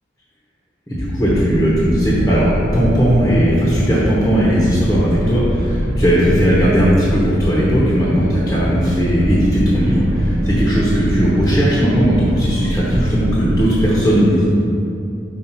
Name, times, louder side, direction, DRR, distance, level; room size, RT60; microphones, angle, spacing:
voice 1, 0.9-14.4, equal, 15° left, -7 dB, 1.0 m, -17 dB
sound 1, 1.0-13.7, equal, 5° right, 1.0 m, -26 dB
sound 2, 1.2-13.8, right 1 dB, 55° right, 0.5 m, -25 dB
5.8 x 4.6 x 4.5 m, 2.7 s
head